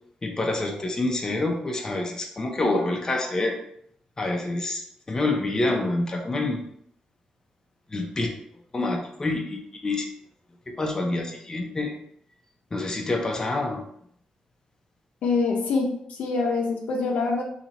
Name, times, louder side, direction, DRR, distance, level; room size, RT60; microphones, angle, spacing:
voice 1, 0.2-3.6 4.2-6.6 7.9-8.3 8.7-10.0 10.7-12.0 12.7-13.8, left 2 dB, 25° left, 1 dB, 0.6 m, -27 dB
voice 2, 15.2-15.9 16.2-17.4, left 4 dB, 80° left, 0 dB, 0.8 m, -24 dB
2.9 x 2.9 x 4.0 m, 0.69 s
cardioid pair, 90°, 2 cm